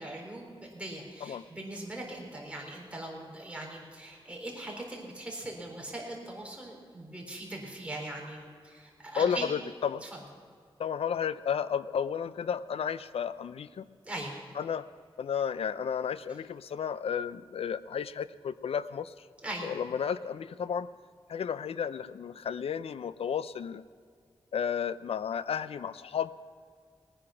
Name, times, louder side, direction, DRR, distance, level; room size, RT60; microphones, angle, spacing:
voice 1, 0.0-9.5 10.0-10.1 14.0-14.3 19.4-19.7, right 1 dB, 10° right, -1 dB, 4.0 m, -40 dB
voice 2, 9.2-10.0 10.8-13.9 14.6-14.9 15.2-19.1 19.6-20.9 21.3-23.8 24.5-26.3, left 7 dB, 85° left, 16 dB, 0.4 m, -32 dB
19.0 x 9.9 x 5.9 m, 2.1 s
wide cardioid pair, 85°, 10 cm